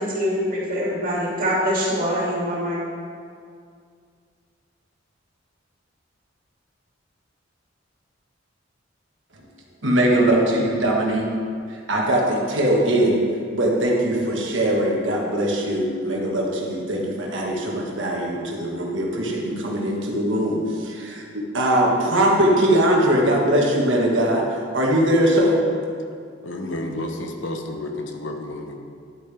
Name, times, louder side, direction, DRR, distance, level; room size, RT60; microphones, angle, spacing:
voice 1, 0.0-2.8, equal, 50° right, -6 dB, 2.7 m, -24 dB
voice 2, 9.8-11.3 11.7-13.2 13.5-25.6, right 1 dB, 75° right, -2 dB, 1.5 m, -21 dB
voice 3, 26.4-28.8, left 1 dB, 75° left, 3 dB, 1.0 m, -31 dB
11.0 x 8.4 x 3.5 m, 2.2 s
head